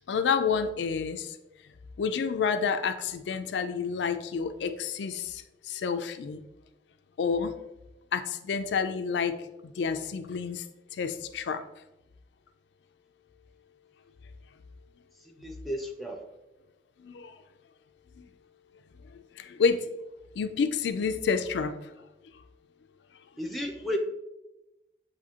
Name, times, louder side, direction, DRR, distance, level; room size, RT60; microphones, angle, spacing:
voice 1, 0.1-1.4 2.0-6.4 7.2-7.5 8.1-10.6 10.9-11.6 17.0-17.4 18.2-18.3 19.4-19.9 20.4-21.9, left 6 dB, 80° left, 9 dB, 0.4 m, -29 dB
voice 2, 15.3-16.2 23.4-24.0, equal, ahead, 0 dB, 0.4 m, -33 dB
7.1 x 2.7 x 2.8 m, 0.95 s
head